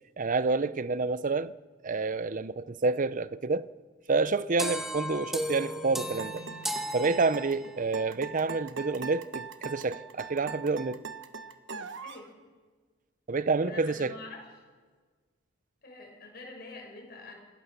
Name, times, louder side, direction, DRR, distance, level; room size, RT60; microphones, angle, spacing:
voice 1, 0.2-1.5 1.8-3.7 4.1-6.4 6.9-11.0 13.3-14.1, right 3 dB, 40° right, 0.6 m, -28 dB
sound 1, 4.6-7.9, equal, ahead, 1.4 m, -35 dB
sound 2, 6.2-12.3, right 5 dB, 65° right, 1.3 m, -41 dB
voice 2, 13.6-14.4 15.8-17.3, left 2 dB, 55° left, 6.2 m, -45 dB
27.5 x 17.0 x 6.9 m
head